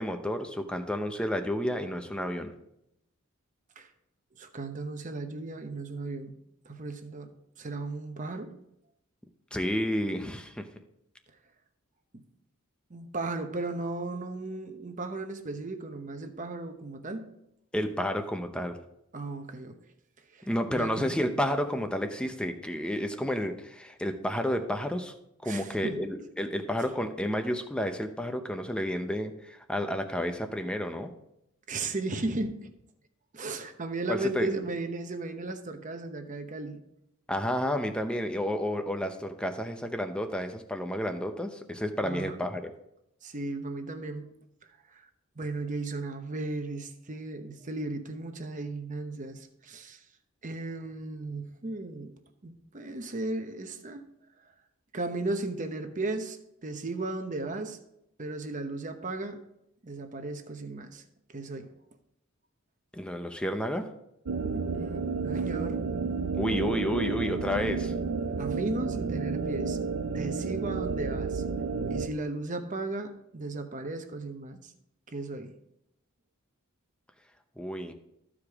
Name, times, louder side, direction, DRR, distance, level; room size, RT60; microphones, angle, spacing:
voice 1, 0.0-2.5 9.5-10.6 17.7-18.8 20.5-25.1 25.4-31.1 34.1-34.5 37.3-42.7 62.9-63.9 66.3-67.9 77.6-77.9, equal, 5° left, 6 dB, 0.7 m, -31 dB
voice 2, 4.4-6.4 6.6-8.6 12.1-12.2 12.9-17.3 19.1-19.8 20.3-21.2 25.4-26.0 31.7-32.7 33.3-36.8 42.0-42.4 43.2-44.3 44.9-45.1 45.4-50.0 50.4-52.2 52.4-54.1 54.9-56.4 56.6-57.8 58.2-59.4 59.8-61.0 61.3-61.7 64.5-65.8 68.4-69.8 70.1-71.4 71.9-74.7 75.1-75.5, right 2 dB, 35° right, 7 dB, 0.9 m, -35 dB
sound 1, 64.3-72.1, right 4 dB, 80° right, 0.5 m, -31 dB
14.0 x 5.0 x 3.5 m, 0.80 s
head